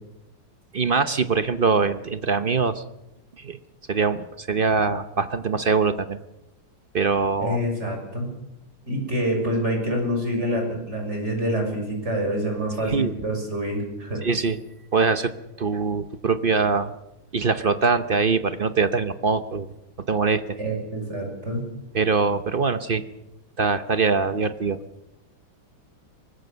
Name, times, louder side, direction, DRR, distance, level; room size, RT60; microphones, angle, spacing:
voice 1, 0.7-2.8 3.4-3.6 3.9-6.2 6.9-7.6 12.8-13.1 14.2-14.6 14.9-15.3 15.6-16.9 17.3-19.7 20.1-20.4 21.9-23.0 23.6-24.8, right 4 dB, 55° right, 11 dB, 0.6 m, -23 dB
voice 2, 7.4-8.3 8.9-14.2 20.6-21.6, equal, 35° right, 2 dB, 6.7 m, -26 dB
23.5 x 20.5 x 6.8 m, 0.91 s
omnidirectional pair, 2.2 m